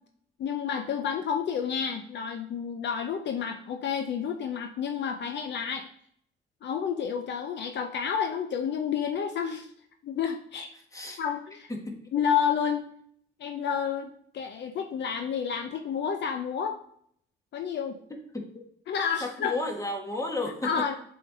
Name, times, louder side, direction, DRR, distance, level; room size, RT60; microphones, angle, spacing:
voice 1, 0.4-5.9 6.6-9.7 10.0-10.7 11.2-11.7 12.1-12.9 13.4-16.8 17.5-18.0 18.9-19.6 20.6-21.0, left 7 dB, 60° left, 5 dB, 0.6 m, -30 dB
voice 2, 18.1-18.6 19.2-21.0, left 2 dB, 15° left, 1 dB, 1.4 m, -33 dB
7.3 x 3.8 x 4.2 m, 0.65 s
cardioid pair, 90°, 20 cm